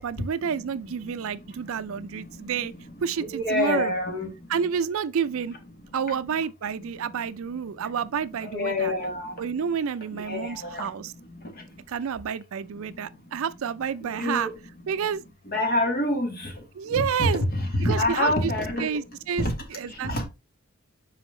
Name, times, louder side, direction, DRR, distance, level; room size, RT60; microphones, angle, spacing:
voice 1, 0.0-2.7 3.0-3.9 4.5-5.6 5.9-8.9 9.4-11.1 11.9-14.5 14.9-15.2 16.8-17.4 17.8-18.5 18.8-20.2, right 7 dB, 65° right, 0.4 m, -29 dB
voice 2, 3.2-4.3 6.1-6.2 8.4-9.4 10.1-10.9 14.0-14.5 15.5-16.5 16.9-19.0 19.4-19.5 19.9-20.2, left 1 dB, 40° left, 2.0 m, -27 dB
5.7 x 4.9 x 3.7 m
head